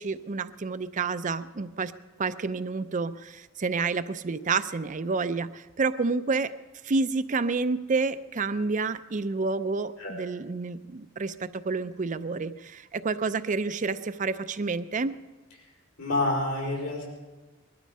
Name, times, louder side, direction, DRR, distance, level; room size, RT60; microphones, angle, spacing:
voice 1, 0.0-1.9 2.2-6.5 6.8-15.2, right 4 dB, 35° right, 12 dB, 0.5 m, -29 dB
voice 2, 16.0-17.2, left 2 dB, 85° left, -2 dB, 5.1 m, -28 dB
20.0 x 12.5 x 5.4 m, 1.2 s
head